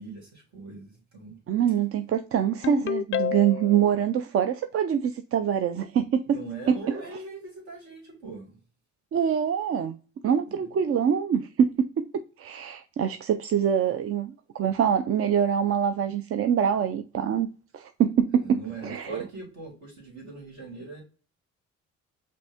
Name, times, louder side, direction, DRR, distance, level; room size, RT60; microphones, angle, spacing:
voice 1, 0.0-1.4 6.3-8.6 10.2-10.7 18.3-21.0, right 3 dB, 65° right, 2.5 m, -41 dB
voice 2, 1.5-6.4 6.7-6.8 9.1-10.0 10.2-12.1 12.4-17.5 17.7-19.2, right 8 dB, 50° right, 0.4 m, -25 dB
Ringtone, 2.6-3.8, left 8 dB, 45° left, 0.4 m, -28 dB
5.2 x 2.6 x 3.5 m
cardioid pair, 90°, 30 cm